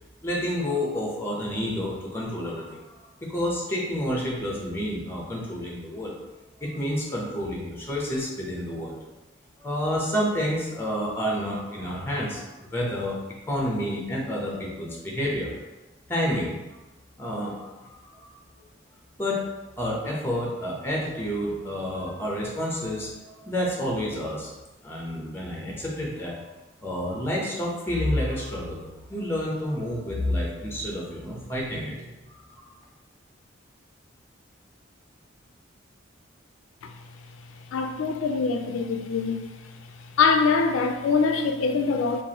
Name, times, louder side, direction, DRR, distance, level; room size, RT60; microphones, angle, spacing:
voice 1, 0.2-6.1 6.6-9.0 9.6-13.2 13.5-15.5 16.1-16.5 17.2-17.9 18.3-18.4 19.2-19.4 19.8-24.5 24.8-26.4 26.8-28.8 29.1-32.0 32.3-32.7, equal, 10° left, -2 dB, 0.8 m, -29 dB
voice 2, 37.7-39.4 40.2-42.2, left 4 dB, 85° left, 6 dB, 0.3 m, -23 dB
4.6 x 2.5 x 2.8 m, 1.1 s
head